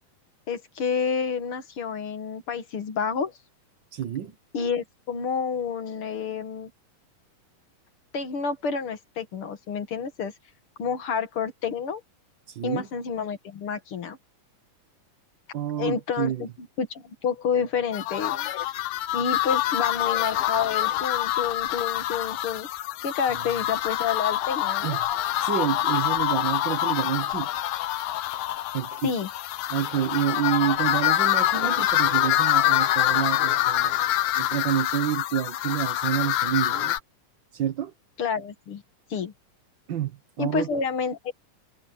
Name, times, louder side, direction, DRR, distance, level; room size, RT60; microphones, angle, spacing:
voice 1, 0.5-3.3 4.5-6.7 8.1-10.3 10.8-12.0 12.6-14.2 15.8-16.5 16.8-18.5 19.1-25.0 29.0-29.3 38.2-38.8 39.1-39.3 40.4-41.3, left 6 dB, 50° left, 2.0 m, -29 dB
voice 2, 3.9-4.3 12.5-12.9 15.5-16.5 24.8-25.0 25.4-27.6 28.7-29.1 29.7-34.0 34.4-37.0 37.5-37.9 39.9-40.7, right 10 dB, 80° right, 1.0 m, -28 dB
sound 1, 17.9-37.0, left 14 dB, 85° left, 2.7 m, -26 dB
omnidirectional pair, 3.9 m